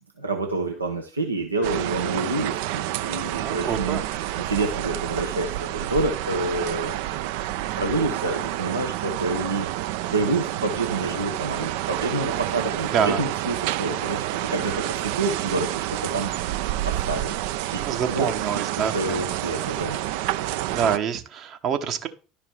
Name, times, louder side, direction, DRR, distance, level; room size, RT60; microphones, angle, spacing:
voice 1, 0.2-4.0 4.5-7.0 7.8-9.7 10.1-16.3 16.8-18.7 18.9-20.0, right 2 dB, 85° right, 0.7 m, -28 dB
sound 1, 1.6-21.0, right 14 dB, 60° right, 0.3 m, -29 dB
voice 2, 3.4-4.0 12.8-13.3 17.8-19.2 20.7-22.1, right 7 dB, 45° right, 1.0 m, -26 dB
11.5 x 4.9 x 3.6 m
figure-of-eight pair, 65°, 0 cm